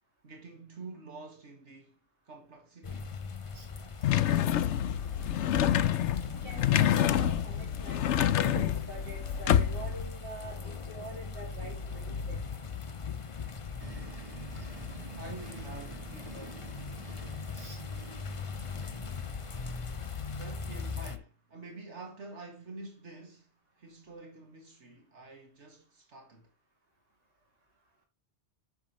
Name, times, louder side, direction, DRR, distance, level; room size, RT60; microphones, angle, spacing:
voice 1, 0.2-2.0 2.3-3.2 15.1-16.7 20.3-23.5 23.8-26.5, right 3 dB, 85° right, 2.2 m, -48 dB
sound 1, 2.8-21.2, left 4 dB, 30° left, 0.8 m, -40 dB
sound 2, 4.0-10.0, left 10 dB, 85° left, 1.0 m, -27 dB
voice 2, 6.3-12.4 17.5-17.8, right 1 dB, 55° right, 2.8 m, -45 dB
sound 3, 13.8-20.2, right 3 dB, 35° right, 1.2 m, -49 dB
9.2 x 7.2 x 3.1 m
omnidirectional pair, 1.2 m